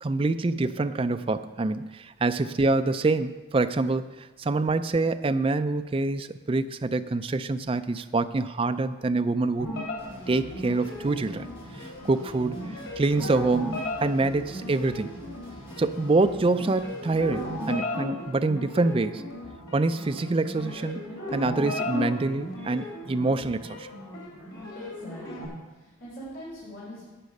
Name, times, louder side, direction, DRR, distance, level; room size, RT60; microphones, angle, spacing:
voice 1, 0.0-9.8 10.3-11.5 11.7-15.2 15.8-19.2 19.7-21.0 21.3-23.9, right 3 dB, 25° right, 9 dB, 0.3 m, -26 dB
sound 1, 9.6-25.4, left 1 dB, 85° left, 3.1 m, -36 dB
sound 2, 10.0-17.7, equal, 30° left, 3.2 m, -47 dB
voice 2, 24.7-27.0, equal, 60° left, -9 dB, 3.7 m, -43 dB
11.5 x 8.1 x 5.3 m, 1.2 s
head